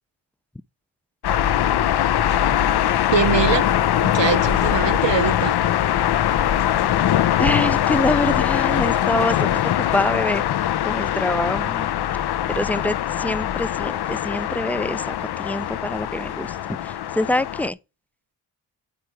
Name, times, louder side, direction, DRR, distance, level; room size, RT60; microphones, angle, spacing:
sound 1, 1.2-17.7, left 11 dB, 60° left, 0.5 m, -22 dB
voice 1, 3.1-3.7 4.0-5.6, right 7 dB, 80° right, 0.9 m, -23 dB
voice 2, 7.4-10.5 10.8-11.9 12.5-17.8, left 1 dB, 5° left, 0.3 m, -25 dB
9.3 x 4.5 x 4.7 m
cardioid pair, 55°, 43 cm